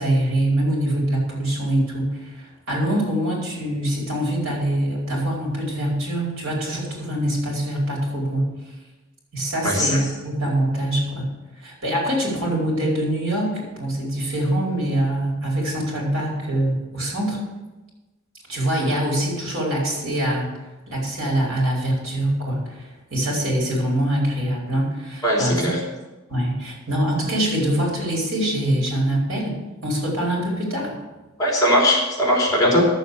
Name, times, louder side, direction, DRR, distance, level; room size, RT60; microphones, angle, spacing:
voice 1, 0.0-8.4 9.3-11.3 11.6-17.4 18.5-20.5 20.9-25.6 26.3-29.6 29.8-31.0, right 1 dB, 70° right, -3 dB, 4.6 m, -24 dB
voice 2, 25.2-25.8 31.4-32.9, equal, 20° left, -3 dB, 3.6 m, -19 dB
12.0 x 7.5 x 6.8 m, 1.1 s
head